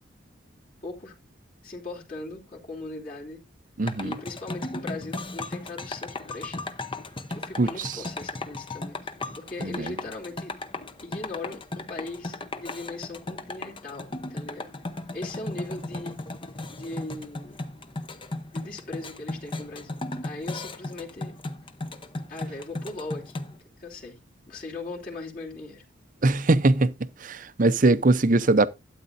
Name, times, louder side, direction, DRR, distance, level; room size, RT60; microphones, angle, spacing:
voice 1, 0.8-1.2 1.6-3.4 4.0-6.8 7.3-9.0 9.4-10.5 11.0-14.7 15.1-16.2 16.7-17.6 18.5-21.4 22.3-23.5 23.8-24.2 24.5-25.8, left 2 dB, 45° left, 3.1 m, -39 dB
sound 1, 3.8-23.6, left 2 dB, 25° left, 0.8 m, -36 dB
voice 2, 3.8-4.1 7.6-7.9 9.6-10.0 26.2-26.9 27.2-28.7, right 2 dB, 45° right, 0.7 m, -21 dB
12.5 x 8.9 x 2.7 m
head